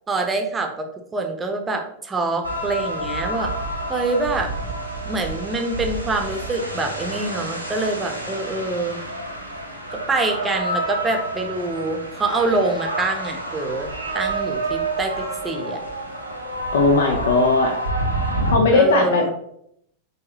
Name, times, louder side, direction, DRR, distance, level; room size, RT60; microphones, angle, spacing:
voice 1, 0.1-3.5 3.9-4.5 5.1-9.0 9.9-15.8 18.7-19.3, right 3 dB, 15° right, 4 dB, 0.7 m, -25 dB
sound 1, 2.4-18.6, right 1 dB, 90° right, 0.6 m, -28 dB
voice 2, 16.7-17.7 18.4-19.3, left 3 dB, 60° left, 3 dB, 0.5 m, -18 dB
4.7 x 2.9 x 2.8 m, 0.72 s
figure-of-eight pair, 90°, 0 cm